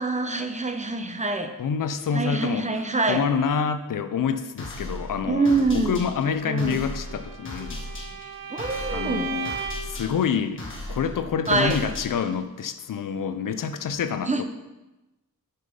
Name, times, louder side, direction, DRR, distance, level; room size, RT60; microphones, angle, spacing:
voice 1, 0.0-1.5 2.1-3.2 5.3-6.0 6.4-6.8 8.5-9.3 11.5-11.9 14.3-14.4, right 3 dB, 20° right, 7 dB, 0.7 m, -25 dB
voice 2, 1.6-2.8 3.1-7.8 8.9-9.5 9.9-10.6 10.9-14.4, left 6 dB, 70° left, 10 dB, 0.6 m, -27 dB
sound 1, 4.6-12.5, left 1 dB, 35° left, 1.5 m, -37 dB
Bowed string instrument, 7.0-10.0, right 7 dB, 80° right, 1.2 m, -35 dB
6.6 x 5.7 x 5.2 m, 1.0 s
wide cardioid pair, 100°, 34 cm